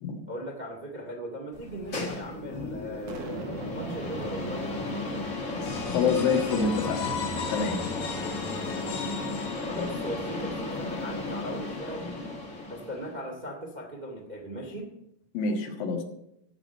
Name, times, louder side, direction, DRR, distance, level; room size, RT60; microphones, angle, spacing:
voice 1, 0.3-5.2 9.7-12.3 12.7-14.9, equal, 20° right, 0 dB, 1.1 m, -38 dB
sound 1, 1.5-13.1, left 2 dB, 35° left, 1.2 m, -34 dB
Boom, 3.1-6.4, right 4 dB, 60° right, 1.8 m, -42 dB
sound 2, 5.7-10.3, left 4 dB, 90° left, 3.7 m, -36 dB
voice 2, 5.9-7.0 7.5-7.8 15.3-16.0, left 5 dB, 75° left, 2 dB, 3.2 m, -26 dB
15.0 x 5.0 x 7.9 m, 0.80 s
omnidirectional pair, 4.2 m